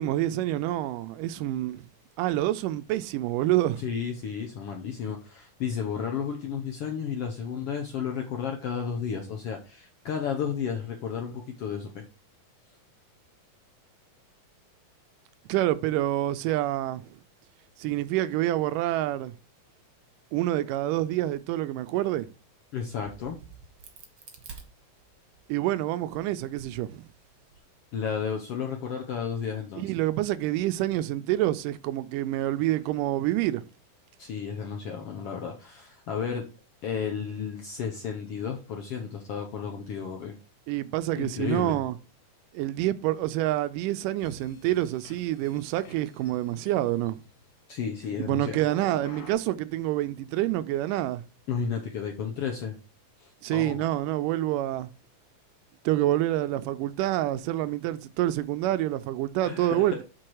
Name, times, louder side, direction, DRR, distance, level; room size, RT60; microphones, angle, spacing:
voice 1, 0.0-1.9 2.2-3.8 15.5-17.1 17.8-19.3 20.3-22.3 25.5-27.1 29.8-33.6 40.7-42.0 42.5-47.2 48.2-51.2 53.4-54.9 55.9-60.0, right 14 dB, 85° right, 2.2 m, -27 dB
voice 2, 3.8-12.0 22.7-23.4 27.9-29.9 34.2-36.4 36.8-40.3 41.2-41.8 47.7-48.6 51.5-52.8 53.2-53.8 59.4-60.0, left 7 dB, 70° left, 1.4 m, -33 dB
Crack, 22.9-25.4 25.9-27.6, right 5 dB, 50° right, 1.6 m, -49 dB
sound 1, 44.2-47.5 48.7-49.3, left 3 dB, 85° left, 3.2 m, -48 dB
7.6 x 4.5 x 4.8 m
omnidirectional pair, 3.7 m